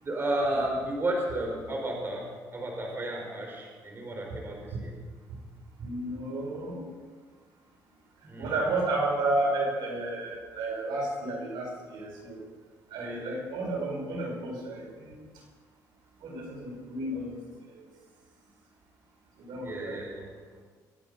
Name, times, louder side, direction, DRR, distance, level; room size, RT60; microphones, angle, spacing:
voice 1, 0.0-4.9 8.2-8.6 19.6-20.3, right 1 dB, 30° right, 0 dB, 4.7 m, -32 dB
voice 2, 5.8-6.9 8.4-12.4 12.9-15.2 16.2-17.4 17.7-17.9 19.4-20.3, right 2 dB, 75° right, -1 dB, 5.3 m, -32 dB
24.0 x 9.1 x 5.4 m, 1.5 s
cardioid pair, 100°, 8 cm